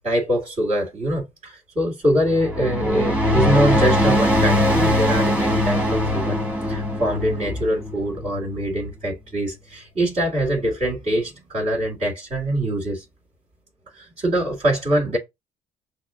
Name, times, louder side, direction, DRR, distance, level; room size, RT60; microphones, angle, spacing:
voice 1, 0.0-6.4 6.7-13.0 13.9-15.2, right 1 dB, 50° right, 2.1 m, -23 dB
sound 1, 2.2-8.8, left 1 dB, 10° right, 1.5 m, -21 dB
5.8 x 2.0 x 3.6 m
supercardioid pair, 65°, 16 cm